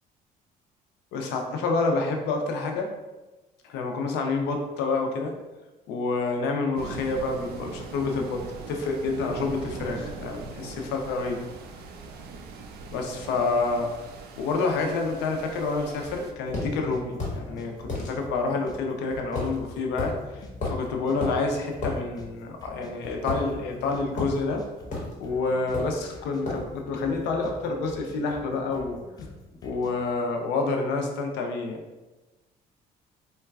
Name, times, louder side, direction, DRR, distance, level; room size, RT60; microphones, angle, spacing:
voice 1, 1.1-2.9 3.6-5.3 5.9-8.4 8.7-11.4 12.9-13.9 14.4-24.6 25.2-29.0 29.6-31.8, left 3 dB, 85° left, 3 dB, 0.5 m, -28 dB
sound 1, 6.8-16.3, right 4 dB, 75° right, 0.4 m, -41 dB
sound 2, 16.0-30.0, left 2 dB, 25° left, 0.4 m, -47 dB
sound 3, 16.5-16.7 17.2-17.4 17.9-18.1 19.4-19.6 20.0-20.1 20.6-20.8 21.2-21.4 21.8-22.0 23.3-23.8 24.2-24.4 24.9-25.1 25.7-26.0 26.5-26.7, left 2 dB, 45° left, 1.1 m, -31 dB
3.9 x 2.2 x 2.3 m, 1.1 s
cardioid pair, 110°, 17 cm